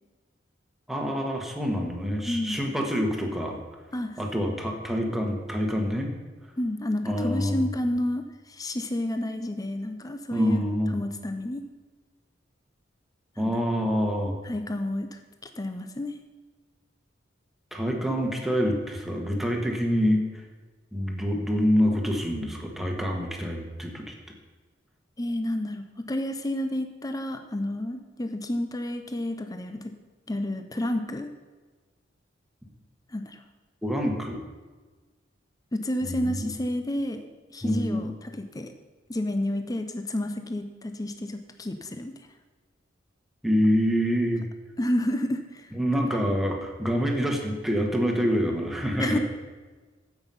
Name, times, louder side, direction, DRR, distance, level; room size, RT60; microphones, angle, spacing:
voice 1, 0.9-3.6 4.2-6.1 7.0-7.7 10.3-11.0 13.4-14.4 17.7-20.2 20.9-24.1 33.8-34.4 36.0-36.5 37.6-38.0 43.4-44.4 45.7-49.2, equal, ahead, 1 dB, 1.5 m, -26 dB
voice 2, 2.3-2.7 3.9-4.2 6.6-10.6 10.9-11.6 13.4-13.5 14.4-16.2 25.2-29.9 30.3-31.3 33.1-33.4 35.7-37.3 37.5-38.7 39.1-42.1 44.8-45.7 46.1-46.2 49.0-49.2, left 1 dB, 20° left, 7 dB, 0.6 m, -30 dB
15.0 x 6.0 x 5.5 m, 1.4 s
head